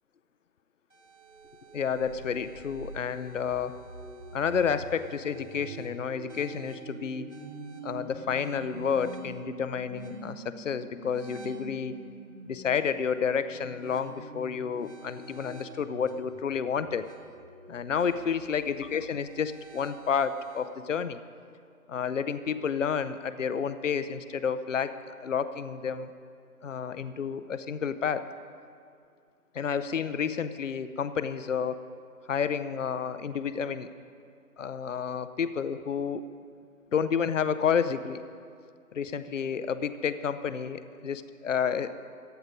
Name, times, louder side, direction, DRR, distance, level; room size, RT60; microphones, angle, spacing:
sound 1, 0.9-20.6, right 2 dB, 50° right, 2.0 m, -46 dB
voice 1, 1.7-3.8 4.3-7.3 7.8-12.0 12.5-17.1 17.7-21.2 21.9-26.1 26.6-28.2 29.5-31.8 32.3-33.9 34.6-36.2 36.9-38.2 38.9-41.9, left 7 dB, 55° left, 13 dB, 0.6 m, -30 dB
15.0 x 10.5 x 5.1 m, 2.3 s
figure-of-eight pair, 155°, 45 cm